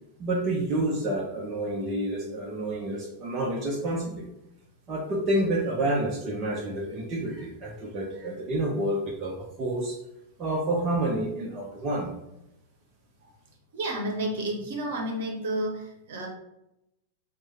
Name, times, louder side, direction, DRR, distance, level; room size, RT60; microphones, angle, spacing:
voice 1, 0.2-4.3 4.9-10.0 10.4-12.1, right 1 dB, 30° right, -2 dB, 0.7 m, -29 dB
voice 2, 13.7-16.3, right 1 dB, 55° right, 1 dB, 0.9 m, -31 dB
4.7 x 2.1 x 4.1 m, 0.87 s
figure-of-eight pair, 90°, 0 cm